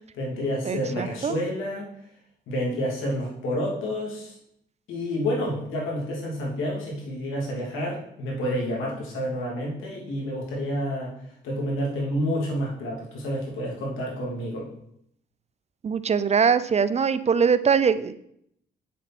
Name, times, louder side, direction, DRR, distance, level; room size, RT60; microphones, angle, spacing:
voice 1, 0.1-1.9 2.5-4.3 4.9-11.1 11.4-14.7, equal, 85° left, -2 dB, 2.9 m, -29 dB
voice 2, 0.7-1.3 15.8-18.2, right 6 dB, 35° right, 14 dB, 0.5 m, -22 dB
8.2 x 7.4 x 4.3 m, 0.73 s
cardioid pair, 90°, 20 cm